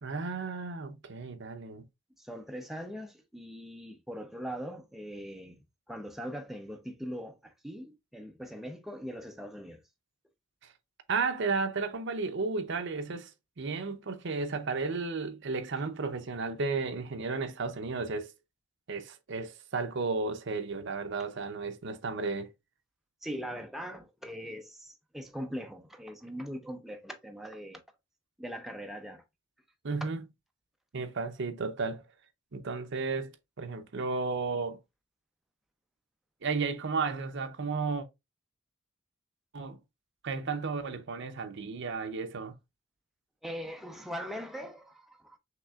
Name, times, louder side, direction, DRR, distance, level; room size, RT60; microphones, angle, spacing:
voice 1, 0.0-1.8 11.1-13.3 13.6-18.3 18.9-22.5 29.8-30.2 30.9-32.0 32.5-33.3 33.6-34.8 36.4-38.1 39.5-39.8 40.2-42.5, right 4 dB, 65° right, 0.7 m, -33 dB
voice 2, 2.2-5.6 5.9-9.8 21.2-21.3 23.2-27.8 28.4-29.2 43.4-45.4, equal, ahead, 0.5 m, -41 dB
5.9 x 3.3 x 2.4 m
head